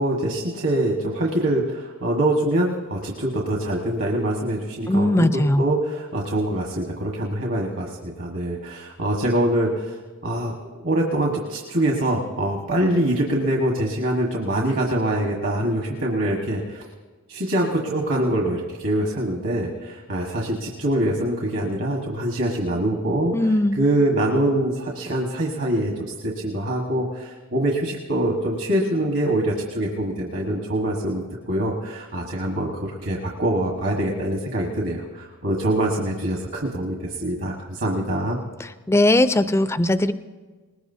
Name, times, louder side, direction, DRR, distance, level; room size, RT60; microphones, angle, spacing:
voice 1, 0.0-5.3 5.6-10.0 10.2-16.8 17.3-23.3 23.8-25.9 26.2-38.4, right 1 dB, 65° right, 0 dB, 1.5 m, -24 dB
voice 2, 4.9-5.6 23.3-23.8 38.9-40.1, left 1 dB, 10° left, 12 dB, 0.4 m, -19 dB
20.0 x 20.0 x 2.7 m, 1.3 s
head